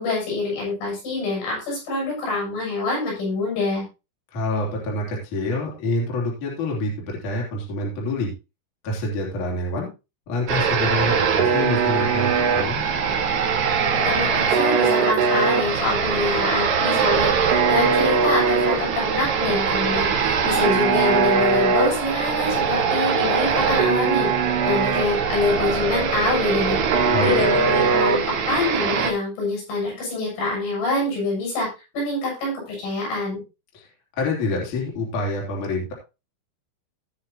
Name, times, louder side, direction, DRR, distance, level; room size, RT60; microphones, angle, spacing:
voice 1, 0.0-3.8 14.0-24.3 24.7-31.7 31.9-33.4, left 3 dB, 75° left, -2 dB, 10.0 m, -25 dB
voice 2, 4.3-8.3 8.8-9.9 10.3-12.9 27.1-27.4 33.7-33.9 34.2-35.9, left 2 dB, 45° left, -2 dB, 4.1 m, -27 dB
sound 1, 10.5-29.1, right 5 dB, 60° right, 3.7 m, -21 dB
19.0 x 6.4 x 2.9 m, 0.28 s
omnidirectional pair, 5.7 m